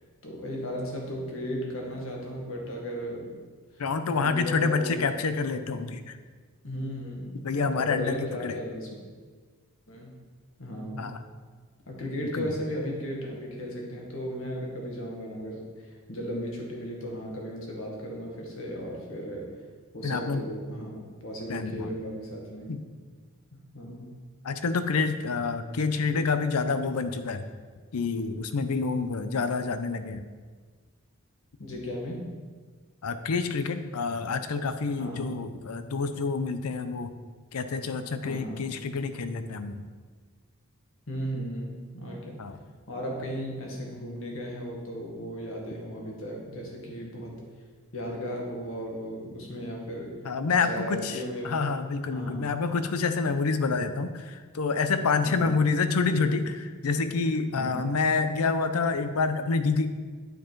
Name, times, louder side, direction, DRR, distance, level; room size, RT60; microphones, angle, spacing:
voice 1, 0.2-3.3 3.7-3.8 4.1-5.0 6.6-7.4 7.7-8.9 9.9-10.2 10.6-11.1 11.9-19.5 19.9-22.7 23.7-24.1 31.6-32.2 35.0-35.3 38.2-38.6 41.1-42.4 42.9-47.3 47.9-50.1 50.5-51.7 52.1-52.5 55.2-55.5 57.5-57.9, equal, 65° left, -1 dB, 1.7 m, -35 dB
voice 2, 3.8-6.1 7.4-8.2 8.4-8.6 11.0-11.2 12.4-12.5 20.0-20.4 21.5-21.9 22.7-22.8 24.4-27.4 27.9-30.2 33.0-37.1 37.5-39.9 42.4-42.6 50.3-51.2 51.4-59.9, left 4 dB, 90° left, 10 dB, 0.6 m, -27 dB
9.1 x 5.0 x 4.6 m, 1.5 s
head